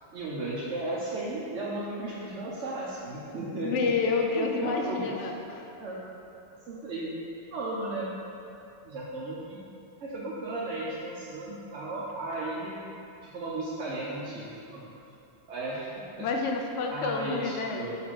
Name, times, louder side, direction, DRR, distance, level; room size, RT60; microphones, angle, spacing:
voice 1, 0.1-3.9 4.3-5.1 5.8-6.0 6.6-7.2 7.5-8.1 8.8-9.6 10.0-12.8 13.2-14.9 15.5-16.3 16.9-18.0, right 2 dB, 75° right, -6 dB, 1.0 m, -35 dB
voice 2, 3.6-5.7 16.2-17.8, left 4 dB, 80° left, 2 dB, 0.9 m, -29 dB
5.3 x 4.1 x 4.6 m, 2.7 s
omnidirectional pair, 1.2 m